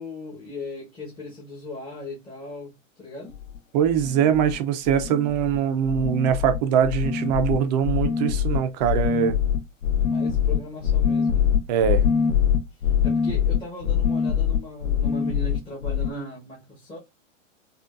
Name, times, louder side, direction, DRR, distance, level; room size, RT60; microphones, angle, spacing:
voice 1, 0.0-3.4 10.0-11.6 12.7-17.0, left 1 dB, 10° left, 1.1 m, -38 dB
sound 1, 3.3-3.5 3.8-4.6 4.8-5.6 5.8-16.1, left 8 dB, 70° left, 1.1 m, -24 dB
voice 2, 3.7-9.4 11.7-12.0, right 9 dB, 30° right, 0.6 m, -22 dB
5.3 x 2.5 x 2.4 m
hypercardioid pair, 145°, 41 cm